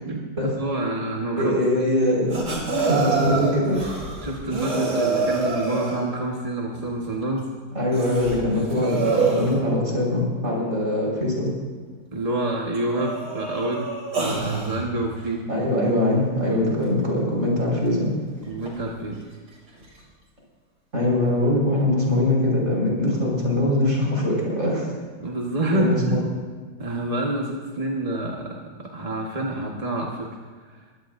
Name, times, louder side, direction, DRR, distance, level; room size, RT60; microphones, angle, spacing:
voice 1, 0.6-1.8 2.8-2.9 4.2-7.5 12.1-13.9 14.2-15.5 18.5-19.2 25.2-26.2 26.8-30.3 30.7-30.8, right 1 dB, 25° right, -1 dB, 1.3 m, -27 dB
voice 2, 1.4-2.3 2.8-3.9 7.7-11.5 15.5-18.1 20.9-24.9 25.7-26.2, left 1 dB, 45° right, -3 dB, 5.2 m, -22 dB
sound 1, 2.3-6.1 6.7-6.8 7.4-7.5 7.9-9.6 11.5-11.6 12.3-12.4 12.7-14.9 17.9-18.0 18.4-18.8 19.8-19.9, right 4 dB, 70° right, 3.5 m, -26 dB
22.5 x 16.0 x 2.6 m, 1.5 s
omnidirectional pair, 1.8 m